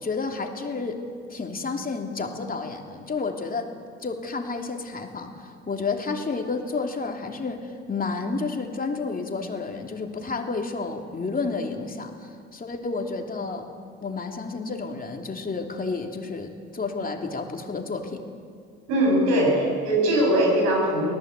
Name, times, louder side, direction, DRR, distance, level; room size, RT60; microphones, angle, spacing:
voice 1, 0.0-1.0 1.3-3.7 4.0-13.7 14.0-18.2, left 4 dB, 30° left, 3 dB, 3.0 m, -31 dB
voice 2, 18.9-21.1, right 1 dB, 85° right, 0 dB, 8.0 m, -21 dB
23.5 x 18.5 x 8.3 m, 2.2 s
supercardioid pair, 70°, 30 cm